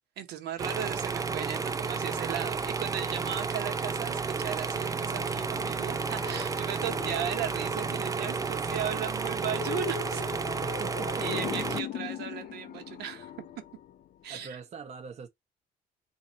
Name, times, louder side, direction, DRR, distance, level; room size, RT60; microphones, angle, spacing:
voice 1, 0.2-10.2 11.2-13.3 14.2-14.6, right 10 dB, 75° right, 1.3 m, -36 dB
sound 1, 0.6-11.8, right 5 dB, 20° right, 0.5 m, -32 dB
sound 2, 4.7-14.5, left 11 dB, 55° left, 0.5 m, -41 dB
voice 2, 10.6-11.5 14.3-15.3, right 6 dB, 40° right, 1.0 m, -42 dB
3.9 x 2.8 x 4.2 m
cardioid pair, 110°, 17 cm